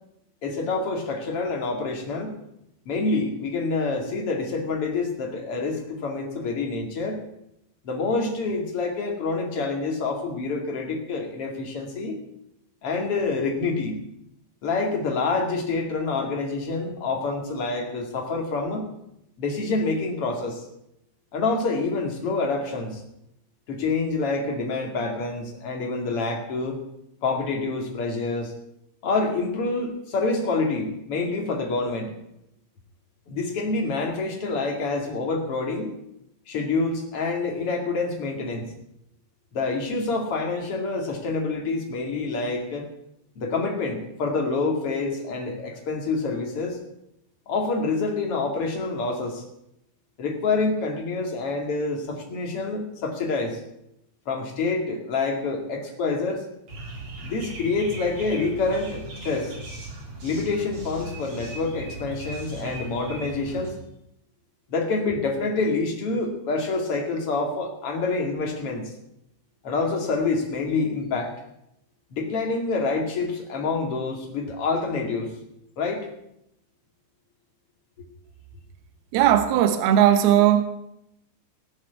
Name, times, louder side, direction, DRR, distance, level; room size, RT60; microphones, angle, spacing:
voice 1, 0.4-2.3 2.9-7.2 7.8-12.2 12.8-14.0 14.6-18.9 19.4-20.6 21.3-23.0 23.7-26.8 27.2-28.5 29.0-32.1 33.3-36.0 36.5-38.7 39.5-42.9 43.4-46.8 47.5-49.4 50.2-53.6 54.3-56.4 57.2-59.5 60.2-63.7 64.7-68.9 69.6-71.3 72.1-75.3 75.8-76.1, left 3 dB, 40° left, 1 dB, 2.3 m, -27 dB
sound 1, 56.7-63.7, right 2 dB, 40° right, 3.8 m, -38 dB
voice 2, 79.1-80.6, right 11 dB, 75° right, 8 dB, 2.5 m, -18 dB
18.0 x 8.1 x 7.0 m, 0.80 s
omnidirectional pair, 5.5 m